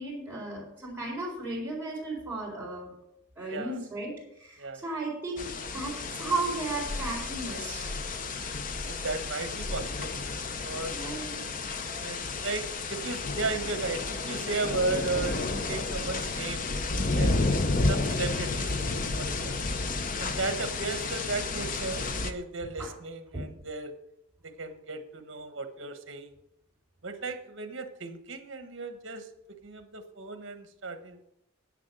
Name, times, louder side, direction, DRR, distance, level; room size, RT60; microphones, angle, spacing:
voice 1, 0.0-2.9 3.4-8.0 10.9-11.3 11.9-12.0 22.8-22.9 23.3-23.4, right 2 dB, 10° right, -8 dB, 4.2 m, -35 dB
sound 1, 5.4-22.3, left 3 dB, 40° left, 0.7 m, -31 dB
voice 2, 8.9-10.1 10.6-11.2 12.0-16.7 17.1-17.4 17.8-19.7 20.2-23.9 24.6-26.3 27.0-31.2, right 3 dB, 65° right, 8 dB, 1.3 m, -35 dB
10.0 x 7.7 x 6.0 m, 0.78 s
head